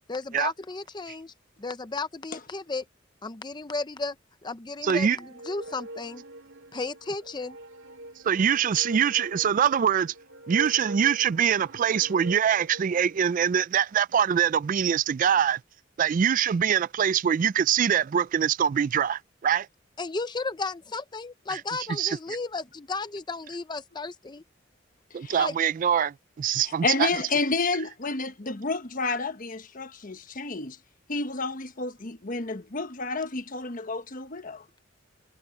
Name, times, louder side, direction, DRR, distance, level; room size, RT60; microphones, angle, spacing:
voice 1, 0.1-1.3 1.6-2.8 3.2-4.2 4.4-6.2 6.7-7.6 20.0-24.4 25.4-25.5, left 3 dB, 25° left, 0.6 m, -34 dB
voice 2, 4.8-5.2 8.2-10.1 10.5-15.6 16.0-19.7 21.5-21.6 21.9-22.2 25.1-27.1, right 8 dB, 40° right, 0.3 m, -24 dB
sound 1, 5.1-13.3, right 1 dB, 90° right, 1.9 m, -43 dB
voice 3, 26.8-30.8 31.1-34.6, left 3 dB, 45° left, 1.2 m, -30 dB
head